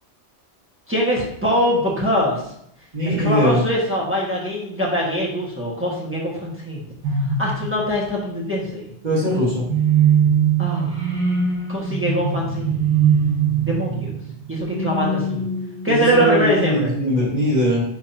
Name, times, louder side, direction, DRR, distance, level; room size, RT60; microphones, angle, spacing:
voice 1, 0.9-2.4 3.2-6.8 7.4-8.9 10.6-11.0 11.7-12.8 13.7-14.1 14.5-15.4 15.8-16.9, equal, 10° right, -6 dB, 1.6 m, -22 dB
voice 2, 2.9-3.6 9.0-9.7 15.9-17.8, equal, 40° right, -9 dB, 1.9 m, -20 dB
sound 1, 7.0-8.1 9.7-16.2, right 6 dB, 80° right, 2.5 m, -21 dB
11.0 x 3.9 x 2.8 m, 0.72 s
omnidirectional pair, 1.2 m